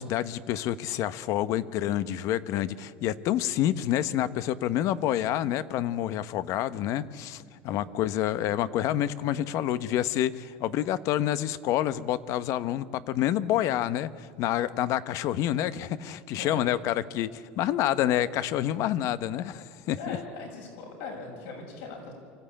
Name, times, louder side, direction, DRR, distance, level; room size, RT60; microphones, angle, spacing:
voice 1, 0.0-20.2, left 12 dB, 60° left, 14 dB, 0.9 m, -28 dB
voice 2, 20.0-22.1, left 3 dB, 80° left, 1 dB, 7.2 m, -40 dB
25.0 x 14.5 x 8.8 m, 2.1 s
supercardioid pair, 105°, 6 cm